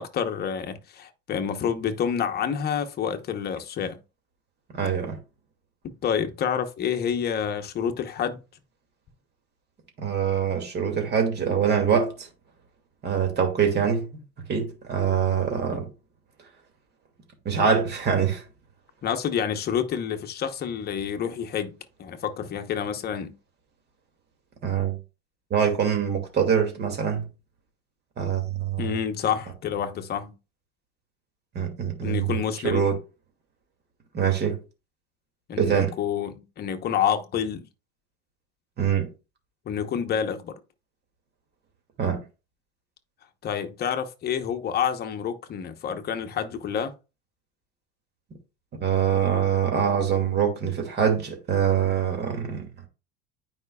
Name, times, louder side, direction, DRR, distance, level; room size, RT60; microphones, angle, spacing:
voice 1, 0.0-4.0 5.8-8.4 15.7-15.8 19.0-23.3 28.8-30.3 32.0-32.8 35.5-37.6 39.7-40.5 43.4-46.9, left 8 dB, 35° left, 1.0 m, -28 dB
voice 2, 4.7-5.2 10.0-12.3 13.0-14.1 14.5-15.9 17.4-18.4 24.6-25.0 25.5-27.3 28.2-28.9 31.5-32.4 32.6-33.0 34.1-34.6 35.6-35.9 38.8-39.1 42.0-42.2 48.8-52.7, right 7 dB, 35° right, 2.4 m, -24 dB
9.2 x 5.2 x 2.3 m
supercardioid pair, 135°, 29 cm